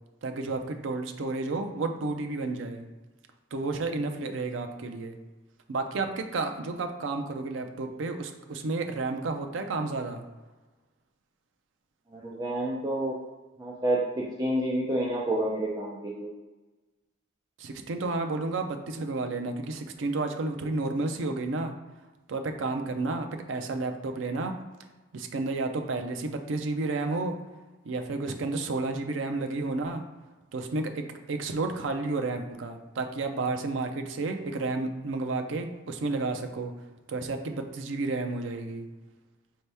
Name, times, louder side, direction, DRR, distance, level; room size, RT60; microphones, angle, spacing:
voice 1, 0.2-2.9 3.5-5.2 5.7-10.2 17.6-21.7 22.3-24.6 25.1-27.4 27.9-30.0 30.5-36.7 37.1-38.9, right 3 dB, 80° right, 5 dB, 0.5 m, -31 dB
voice 2, 12.1-13.2 13.6-16.3, right 1 dB, 20° right, -4 dB, 0.4 m, -29 dB
4.4 x 2.8 x 3.3 m, 1.2 s
head